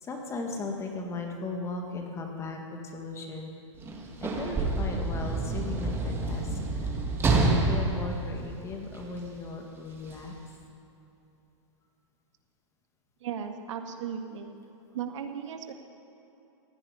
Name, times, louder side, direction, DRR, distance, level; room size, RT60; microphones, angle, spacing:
voice 1, 0.0-3.5 4.2-6.9 7.4-10.3, left 3 dB, 15° left, 2 dB, 1.9 m, -37 dB
Sliding door / Slam, 3.8-9.2 10.1-10.2, right 2 dB, 15° right, 1.7 m, -28 dB
voice 2, 13.2-14.5 14.9-15.7, right 8 dB, 70° right, 6 dB, 1.6 m, -36 dB
16.5 x 8.7 x 9.8 m, 2.9 s
hypercardioid pair, 145°, 16 cm